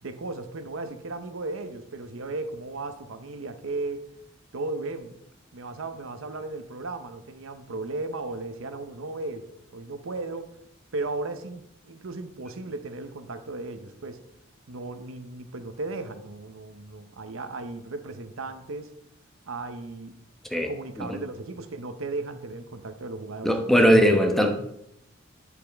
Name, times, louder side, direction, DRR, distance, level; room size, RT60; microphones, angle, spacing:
voice 1, 0.0-4.0 4.5-5.2 5.5-9.5 9.7-10.5 10.9-14.2 14.7-18.9 19.5-20.2 20.6-24.0, right 3 dB, 75° right, 9 dB, 0.8 m, -35 dB
voice 2, 23.4-24.5, equal, ahead, 3 dB, 0.9 m, -19 dB
9.0 x 8.4 x 3.5 m, 0.79 s
head